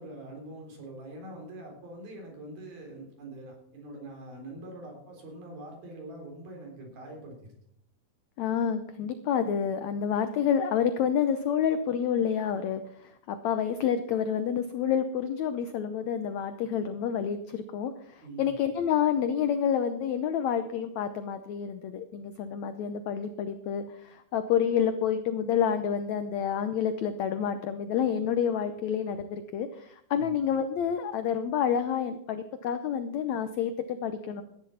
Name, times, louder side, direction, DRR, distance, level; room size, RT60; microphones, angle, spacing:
voice 1, 0.0-7.5 18.2-18.5 30.1-30.4, right 1 dB, 80° right, 0 dB, 5.8 m, -44 dB
voice 2, 8.4-34.4, left 8 dB, 75° left, 9 dB, 1.6 m, -29 dB
14.5 x 10.5 x 5.8 m, 0.73 s
omnidirectional pair, 4.2 m